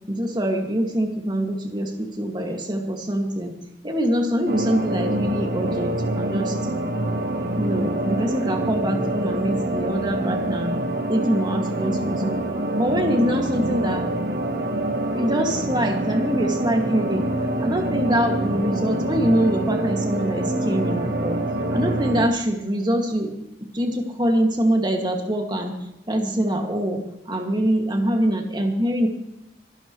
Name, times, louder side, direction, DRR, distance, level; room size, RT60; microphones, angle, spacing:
voice 1, 0.1-3.5 3.8-6.6 7.6-10.8 11.1-12.4 12.8-14.1 15.1-17.3 17.6-21.4 21.7-23.3 23.7-27.0 27.3-29.1, equal, 25° right, 2 dB, 2.1 m, -24 dB
sound 1, 4.5-22.3, right 1 dB, 65° right, 1.5 m, -26 dB
26.0 x 11.5 x 3.2 m, 0.88 s
head